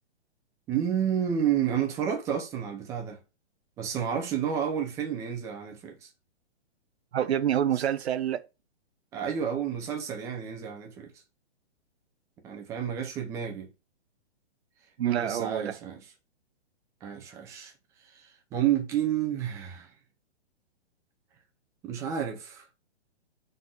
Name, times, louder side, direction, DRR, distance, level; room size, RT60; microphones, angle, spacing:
voice 1, 0.7-3.2 3.8-6.1 9.1-11.1 12.4-13.7 15.0-16.0 17.0-17.7 18.1-19.9 21.8-22.6, right 9 dB, 10° right, 0.6 m, -30 dB
voice 2, 7.1-8.5 15.0-15.8, right 10 dB, 75° right, 0.7 m, -27 dB
5.8 x 4.0 x 5.7 m
hypercardioid pair, 160°, 33 cm